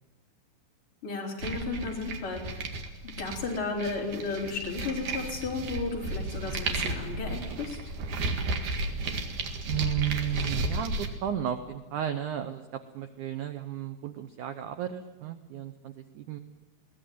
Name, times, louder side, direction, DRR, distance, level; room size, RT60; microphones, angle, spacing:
voice 1, 1.0-2.7 3.0-7.9, left 3 dB, 30° left, -2 dB, 4.5 m, -34 dB
sound 1, 1.4-11.1, right 2 dB, 55° right, 3.0 m, -33 dB
voice 2, 9.7-16.4, right 11 dB, 80° right, 8 dB, 1.7 m, -34 dB
22.0 x 17.0 x 9.3 m, 1.2 s
omnidirectional pair, 4.8 m